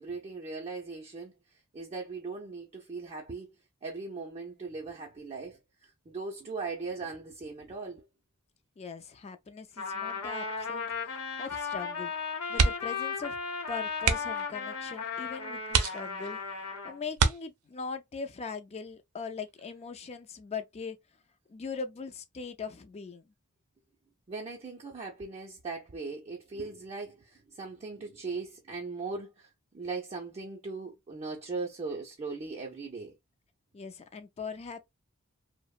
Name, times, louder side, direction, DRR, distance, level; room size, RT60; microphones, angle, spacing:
voice 1, 0.0-3.5 3.8-8.1 24.3-33.2, right 4 dB, 30° right, 0.5 m, -39 dB
voice 2, 8.8-12.1 12.5-13.4 13.7-21.0 21.5-23.3 33.7-34.8, left 5 dB, 30° left, 0.4 m, -40 dB
Trumpet, 9.8-17.0, left 5 dB, 85° left, 0.8 m, -35 dB
sound 1, 12.5-13.0 13.3-13.5 14.0-14.5 15.1-15.2 15.7-16.4 17.1-17.9 19.5-19.8 20.2-20.3, right 5 dB, 90° right, 0.5 m, -27 dB
2.8 x 2.0 x 2.3 m
head